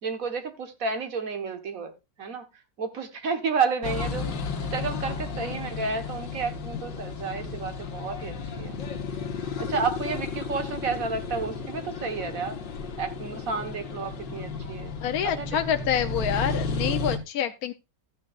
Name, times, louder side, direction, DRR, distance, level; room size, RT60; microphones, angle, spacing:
voice 1, 0.0-1.9 2.2-2.5 2.8-4.3 4.7-8.8 9.6-12.6 13.0-14.9 15.2-15.5, right 5 dB, 50° right, 1.7 m, -31 dB
sound 1, 3.8-17.2, left 4 dB, 80° left, 2.1 m, -33 dB
voice 2, 15.0-17.7, left 9 dB, 65° left, 1.1 m, -27 dB
14.0 x 9.2 x 2.5 m
omnidirectional pair, 1.9 m